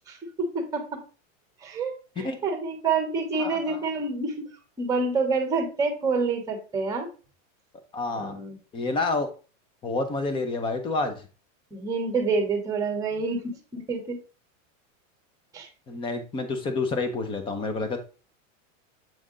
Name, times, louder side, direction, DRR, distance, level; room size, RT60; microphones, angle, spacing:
voice 1, 0.1-0.8 1.6-4.3 4.8-7.1 8.1-8.6 11.7-14.2 15.5-15.7, right 4 dB, 10° right, 3 dB, 1.2 m, -27 dB
voice 2, 3.4-3.9 7.9-8.3 8.7-9.3 9.8-11.2 15.9-18.0, left 3 dB, 15° left, 8 dB, 0.6 m, -28 dB
7.5 x 3.4 x 3.7 m, 0.35 s
supercardioid pair, 160°, 40 cm